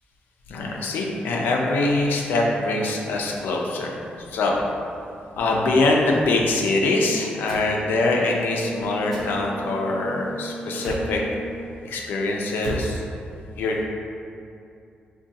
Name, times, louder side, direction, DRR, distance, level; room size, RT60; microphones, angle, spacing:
voice 1, 0.5-4.0 4.3-4.6 5.4-11.2 11.8-13.0 13.6-13.8, left 2 dB, 90° left, 0 dB, 0.4 m, -23 dB
sound 1, 7.5-7.7 9.1-9.3 10.7-11.1 12.5-12.9, right 1 dB, 5° left, 0.6 m, -33 dB
Brass instrument, 7.5-11.9, right 1 dB, 75° right, 0.6 m, -36 dB
3.5 x 2.2 x 2.6 m, 2.6 s
wide cardioid pair, 180°, 3 cm